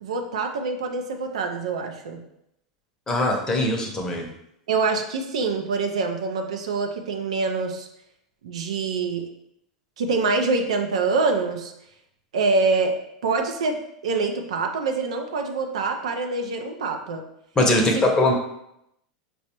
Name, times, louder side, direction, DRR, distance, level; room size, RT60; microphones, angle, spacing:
voice 1, 0.0-2.2 4.7-7.9 8.4-9.3 10.0-11.7 12.3-12.9 13.2-13.8 14.0-17.2 17.7-18.3, right 4 dB, 80° right, 4 dB, 0.5 m, -25 dB
voice 2, 3.1-4.3 17.6-18.3, left 2 dB, 20° left, 1 dB, 0.7 m, -21 dB
4.6 x 2.0 x 2.9 m, 0.79 s
hypercardioid pair, 100°, 3 cm